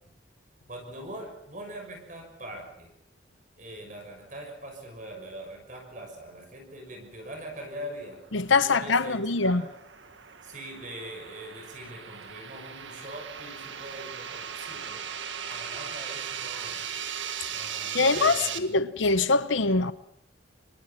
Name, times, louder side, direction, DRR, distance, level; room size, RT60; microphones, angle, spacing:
voice 1, 0.7-3.0 3.6-8.2 8.6-9.7 10.4-15.1 15.5-16.9 17.5-18.8, right 1 dB, 40° right, 6.1 m, -42 dB
sound 1, 8.1-18.6, right 8 dB, 75° right, 1.8 m, -38 dB
voice 2, 8.3-9.6 17.9-19.9, left 3 dB, 80° left, 1.0 m, -23 dB
27.5 x 22.5 x 5.8 m
head